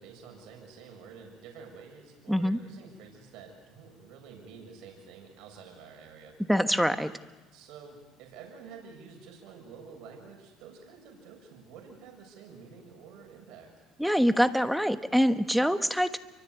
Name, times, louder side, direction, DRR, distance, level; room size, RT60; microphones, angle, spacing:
voice 1, 0.0-6.4 7.5-13.7, right 6 dB, 70° right, 2 dB, 7.0 m, -49 dB
voice 2, 2.3-2.6 6.5-7.1 14.0-16.2, equal, ahead, 9 dB, 1.2 m, -24 dB
29.5 x 24.0 x 8.2 m, 1.2 s
cardioid pair, 110°, 0 cm